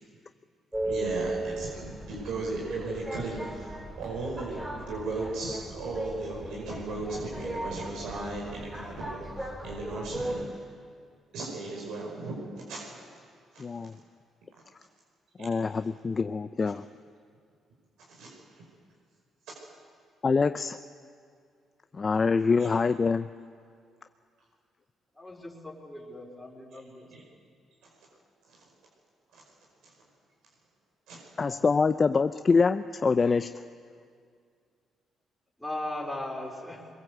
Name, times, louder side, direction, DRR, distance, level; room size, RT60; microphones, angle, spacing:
sound 1, 0.7-10.4, right 1 dB, 10° right, 4.8 m, -37 dB
voice 1, 0.8-10.6 11.3-12.3 12.7-12.9 13.5-13.6 15.4-15.5 18.1-18.3 27.1-27.2 28.5-28.6 29.3-29.4 31.1-31.2, right 3 dB, 85° right, -3 dB, 5.2 m, -36 dB
voice 2, 13.6-13.9 15.4-16.8 20.2-20.8 21.9-23.3 31.4-33.5, left 4 dB, 35° left, 10 dB, 0.6 m, -25 dB
voice 3, 25.1-27.1 35.6-36.9, left 1 dB, 5° left, -3 dB, 4.6 m, -38 dB
22.5 x 22.0 x 8.0 m, 2.2 s
cardioid pair, 90°, 0 cm